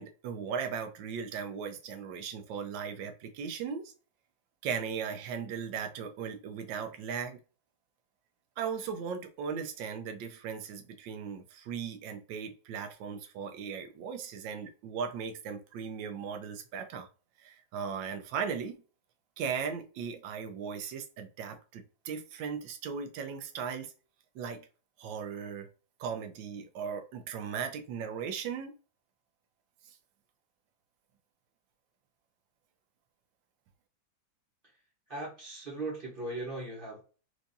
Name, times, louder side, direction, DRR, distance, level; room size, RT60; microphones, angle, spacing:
voice 1, 0.0-3.9 4.6-7.4 8.6-17.1 17.4-18.8 19.4-23.9 24.3-24.7 25.0-25.7 26.0-28.7, right 6 dB, 75° right, 7 dB, 1.3 m, -37 dB
voice 2, 35.1-37.0, right 2 dB, 35° right, -3 dB, 1.0 m, -38 dB
4.6 x 2.5 x 2.6 m, 0.35 s
omnidirectional pair, 2.1 m